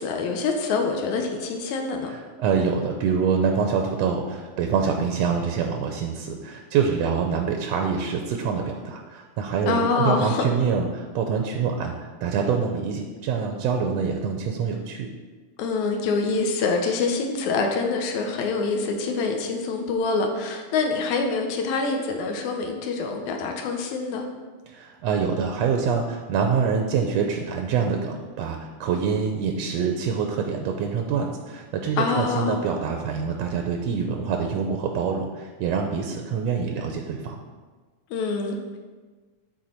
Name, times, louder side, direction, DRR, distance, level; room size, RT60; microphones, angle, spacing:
voice 1, 0.0-2.1 9.7-10.5 15.6-24.3 32.0-32.6 38.1-38.8, left 4 dB, 80° left, 3 dB, 2.2 m, -25 dB
voice 2, 2.1-15.1 24.7-37.4, right 6 dB, 75° right, 3 dB, 1.6 m, -25 dB
12.0 x 4.4 x 4.4 m, 1.4 s
omnidirectional pair, 3.4 m